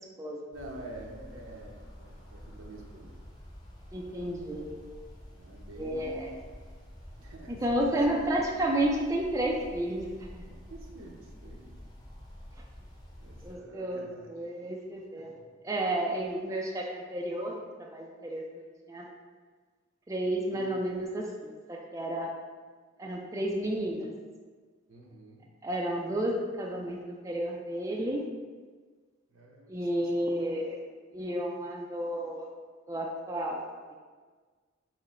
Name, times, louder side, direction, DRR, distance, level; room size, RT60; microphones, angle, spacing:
sound 1, 0.5-13.5, equal, 20° left, 0.7 m, -49 dB
voice 1, 0.5-3.2 5.4-6.6 7.2-8.3 10.4-11.7 13.2-14.3 15.2-15.5 20.5-20.7 24.9-25.5 29.3-30.1, right 1 dB, 85° right, -1 dB, 0.8 m, -48 dB
voice 2, 3.9-4.7 5.8-6.4 7.5-10.1 10.3-10.4 13.4-17.6 17.9-18.4 18.9-19.1 20.1-22.3 23.0-24.1 25.6-27.0 27.2-28.2 29.7-30.8 31.1-32.5 32.9-33.7, right 1 dB, 15° right, -1 dB, 0.4 m, -31 dB
5.9 x 2.1 x 4.2 m, 1.5 s
head